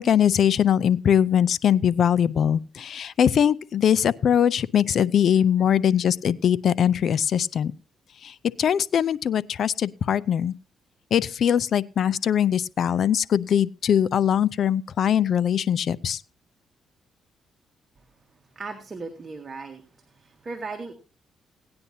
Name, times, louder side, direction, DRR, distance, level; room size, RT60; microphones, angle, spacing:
voice 1, 0.0-7.7 8.2-10.5 11.1-16.2, left 9 dB, 60° left, 18 dB, 0.5 m, -21 dB
voice 2, 18.6-19.8 20.1-20.9, right 3 dB, 35° right, 4 dB, 1.8 m, -36 dB
17.5 x 9.6 x 2.8 m, 0.33 s
cardioid pair, 90°, 0 cm